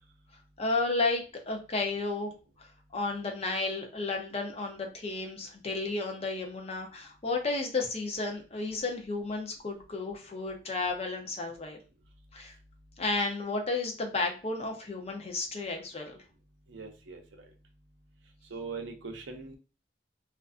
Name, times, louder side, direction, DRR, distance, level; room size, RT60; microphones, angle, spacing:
voice 1, 0.6-2.3 2.6-11.8 12.3-12.5 13.0-16.2, left 3 dB, 35° left, 2 dB, 0.5 m, -32 dB
voice 2, 16.7-17.2 18.5-19.6, right 4 dB, 75° right, 3 dB, 0.6 m, -40 dB
2.4 x 2.3 x 2.4 m, 0.34 s
head